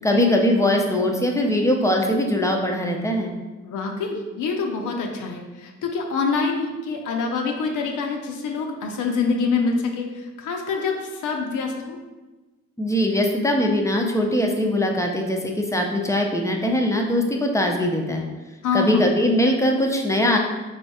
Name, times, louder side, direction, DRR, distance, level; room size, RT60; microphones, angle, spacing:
voice 1, 0.0-3.3 12.8-18.3 18.7-20.4, left 1 dB, 10° left, 2 dB, 0.6 m, -21 dB
voice 2, 3.6-12.0 18.6-19.0, left 4 dB, 80° left, 2 dB, 0.6 m, -26 dB
4.2 x 2.3 x 4.1 m, 1.2 s
cardioid pair, 85°, 30 cm